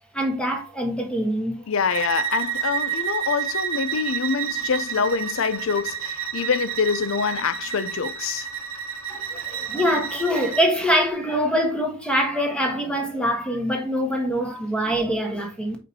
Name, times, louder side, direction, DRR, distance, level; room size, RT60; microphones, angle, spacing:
voice 1, 0.1-1.6 9.1-15.8, equal, 5° left, 1.4 m, -24 dB
voice 2, 1.7-8.5, left 6 dB, 80° left, 0.5 m, -25 dB
Bowed string instrument, 1.9-10.7, right 9 dB, 80° right, 0.9 m, -30 dB
5.1 x 4.4 x 4.1 m
head